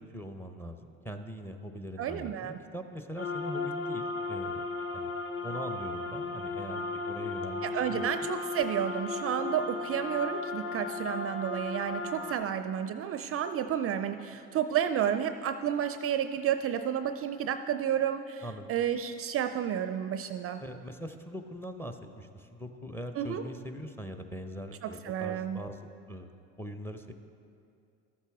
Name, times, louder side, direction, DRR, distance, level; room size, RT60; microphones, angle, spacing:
voice 1, 0.0-4.6 4.9-5.1 5.4-8.1 18.4-18.7 20.6-27.1, equal, 5° left, 7 dB, 0.6 m, -42 dB
voice 2, 2.0-2.6 7.6-20.6 23.2-23.4 24.8-25.6, right 9 dB, 40° right, 9 dB, 0.4 m, -31 dB
sound 1, 3.2-12.3, left 3 dB, 30° left, 1.0 m, -35 dB
13.0 x 8.2 x 3.5 m, 2.5 s
hypercardioid pair, 75°, 37 cm